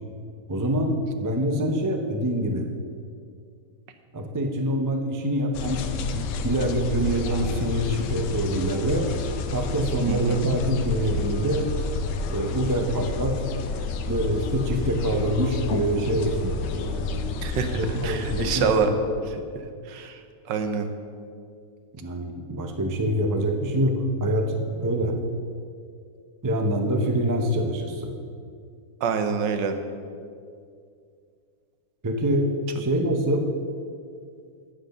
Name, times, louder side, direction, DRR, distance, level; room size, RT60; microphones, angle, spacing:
voice 1, 0.5-2.7 4.1-5.8 6.1-9.1 9.5-11.7 12.3-13.4 14.1-17.2 17.8-19.0 22.0-25.1 26.4-28.1 32.0-32.5 32.8-33.4, right 1 dB, 30° right, 4 dB, 0.3 m, -25 dB
sound 1, 5.5-18.8, left 4 dB, 90° left, 1.4 m, -30 dB
voice 2, 10.1-10.4 17.4-18.9 19.3-19.4 19.9-20.2 20.5-20.9 29.0-29.8, right 6 dB, 85° right, 8 dB, 1.5 m, -26 dB
8.7 x 7.8 x 6.6 m, 2.3 s
omnidirectional pair, 1.9 m